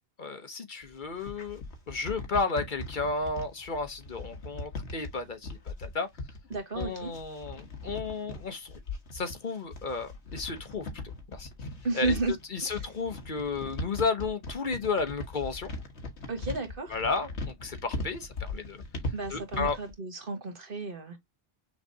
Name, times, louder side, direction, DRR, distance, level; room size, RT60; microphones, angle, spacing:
voice 1, 0.2-6.1 6.8-8.8 9.1-10.9 11.3-11.5 11.9-12.1 12.5-15.7 16.9-18.8 19.3-19.8, left 4 dB, 50° left, 1.0 m, -33 dB
sound 1, 0.8-19.9, left 2 dB, 85° left, 1.7 m, -39 dB
voice 2, 6.5-7.1 11.8-12.3 12.6-12.9 16.3-17.0 19.1-21.2, right 3 dB, 55° right, 1.6 m, -33 dB
6.2 x 3.2 x 2.6 m
omnidirectional pair, 1.1 m